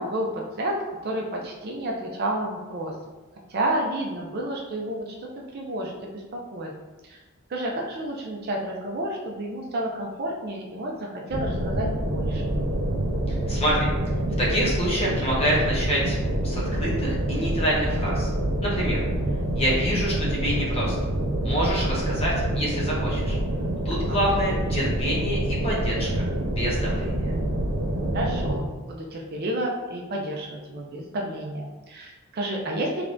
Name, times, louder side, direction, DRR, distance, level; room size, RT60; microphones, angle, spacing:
voice 1, 0.0-2.9 3.5-6.7 7.0-7.2 7.5-12.4 24.1-24.4 28.1-33.0, right 1 dB, 45° right, 0 dB, 0.5 m, -30 dB
sound 1, 11.3-28.6, right 1 dB, 75° right, 0.9 m, -26 dB
voice 2, 13.3-13.9 14.4-18.3 18.6-19.0 19.6-21.0 21.4-23.4 23.8-27.3, equal, 30° left, -4 dB, 0.9 m, -27 dB
3.6 x 3.2 x 2.5 m, 1.2 s
head